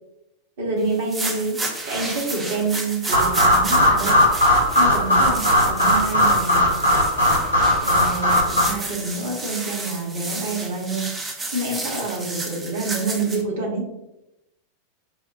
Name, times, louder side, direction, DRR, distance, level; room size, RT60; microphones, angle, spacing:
voice 1, 0.6-4.2 4.7-6.9 7.8-11.1 11.5-13.9, right 3 dB, 60° right, -2 dB, 1.1 m, -27 dB
sound 1, 0.9-13.4, right 2 dB, 15° right, 0.6 m, -32 dB
sound 2, 3.1-8.6, equal, 85° right, 1.0 m, -18 dB
4.8 x 2.1 x 2.6 m, 0.90 s
figure-of-eight pair, 90°, 0 cm